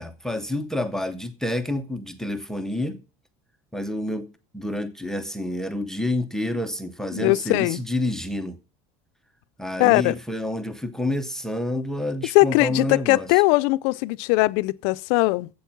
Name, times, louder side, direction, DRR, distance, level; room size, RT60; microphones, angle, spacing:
voice 1, 0.0-3.0 3.7-4.3 4.5-8.6 9.6-13.3, left 1 dB, 5° left, 0.6 m, -28 dB
voice 2, 7.1-7.8 9.8-10.2 12.3-15.5, left 23 dB, 80° left, 0.4 m, -20 dB
8.3 x 7.8 x 5.8 m
cardioid pair, 155°, 17 cm